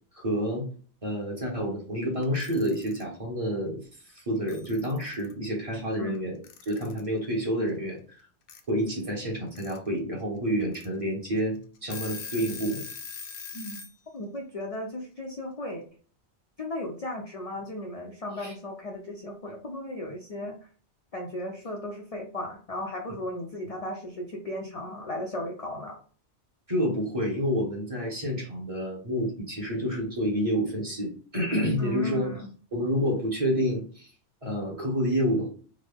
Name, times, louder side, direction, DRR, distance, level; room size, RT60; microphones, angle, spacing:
voice 1, 0.1-0.7 1.0-3.8 4.1-8.0 8.7-12.9 18.4-18.5 26.7-32.3 32.7-34.1 34.4-35.5, equal, 30° right, -2 dB, 1.0 m, -28 dB
Alarm / Clock, 2.2-3.0 4.2-4.3 4.5-5.3 6.4-7.1 8.5-8.6 9.3-9.8 10.2-10.3 10.7-10.9 11.4-11.5 11.8-13.9, left 6 dB, 70° left, 0.8 m, -41 dB
voice 2, 14.1-15.8 16.6-20.7 21.1-26.0 31.8-32.5, left 1 dB, 45° left, 0 dB, 0.5 m, -36 dB
3.7 x 2.0 x 3.3 m, 0.42 s
omnidirectional pair, 1.2 m